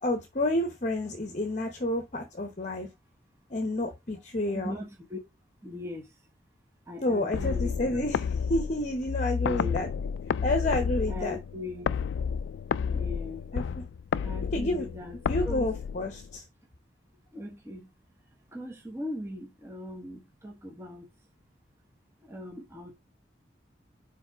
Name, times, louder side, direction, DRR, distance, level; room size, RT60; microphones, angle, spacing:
voice 1, 0.0-2.9 3.5-4.7 7.0-9.9 10.4-11.4 13.5-13.8 14.5-14.9 15.3-16.4, left 1 dB, 40° left, 0.9 m, -30 dB
voice 2, 4.5-5.2 5.6-6.1 6.9-7.7 9.4-9.9 11.1-12.0 12.9-13.5 14.2-15.2 15.4-15.6 17.3-17.9 18.5-21.1 22.3-22.9, left 2 dB, 15° right, 1.3 m, -39 dB
sound 1, 7.3-16.4, left 6 dB, 85° left, 0.3 m, -31 dB
5.0 x 4.2 x 4.9 m
head